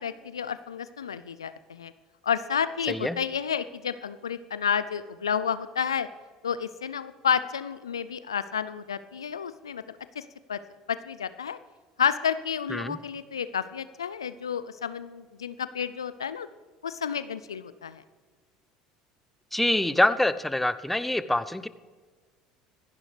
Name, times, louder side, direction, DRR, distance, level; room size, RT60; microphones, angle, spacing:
voice 1, 0.0-1.9 2.2-6.1 6.4-9.8 10.2-10.3 10.5-10.6 10.9-11.6 12.0-16.5 16.8-18.0, left 7 dB, 85° left, 14 dB, 0.4 m, -30 dB
voice 2, 19.5-21.7, left 1 dB, 5° left, 14 dB, 0.7 m, -25 dB
25.5 x 11.0 x 3.3 m, 1.5 s
hypercardioid pair, 65°, 2 cm